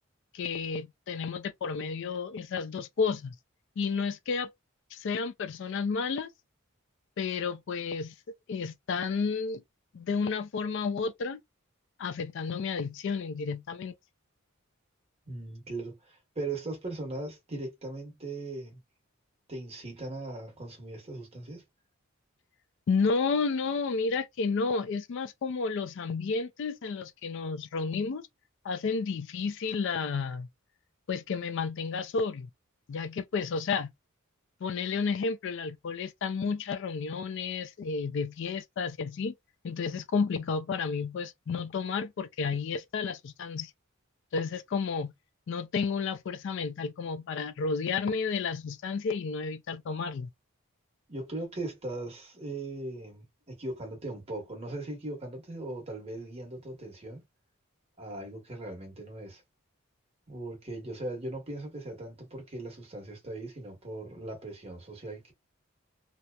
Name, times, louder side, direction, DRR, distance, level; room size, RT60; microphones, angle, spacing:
voice 1, 0.3-3.3 3.8-4.5 4.9-6.3 7.2-9.6 9.9-11.4 12.0-13.9 22.9-28.3 28.6-30.5 31.1-32.5 32.9-33.9 34.6-39.3 39.6-43.7 44.3-45.1 45.5-50.3, left 5 dB, 60° left, 0.4 m, -31 dB
voice 2, 15.3-18.8 19.5-21.6 51.1-57.2 58.0-59.4 60.3-65.3, right 2 dB, 30° right, 1.1 m, -39 dB
2.8 x 2.0 x 2.2 m
head